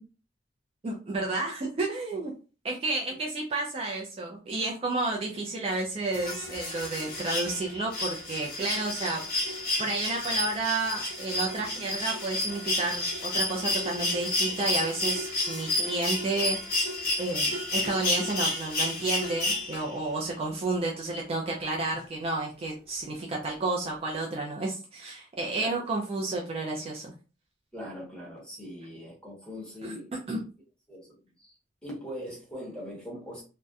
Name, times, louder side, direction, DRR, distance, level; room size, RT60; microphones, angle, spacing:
voice 1, 0.8-2.3 2.6-9.2 9.5-16.6 17.2-27.1 29.8-29.9 30.3-30.4, right 2 dB, 30° right, 0.4 m, -31 dB
sound 1, 6.1-20.1 21.5-21.6, left 1 dB, 55° left, 1.0 m, -31 dB
voice 2, 27.7-30.1 30.9-31.5 31.8-33.4, equal, 5° left, 1.0 m, -41 dB
2.6 x 2.1 x 2.3 m
head